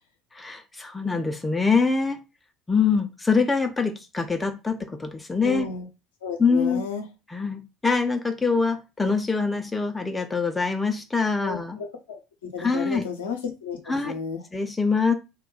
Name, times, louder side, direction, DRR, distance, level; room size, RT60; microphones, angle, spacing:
voice 1, 0.3-2.2 2.7-5.7 6.4-6.8 7.3-11.8 12.6-13.0 13.9-14.1 14.5-15.1, left 4 dB, 15° left, 0.4 m, -24 dB
voice 2, 5.4-5.9 6.2-7.0 11.4-12.2 12.5-13.8 14.0-14.4, left 6 dB, 70° left, 0.6 m, -32 dB
2.2 x 2.2 x 3.8 m
figure-of-eight pair, 60°, 0 cm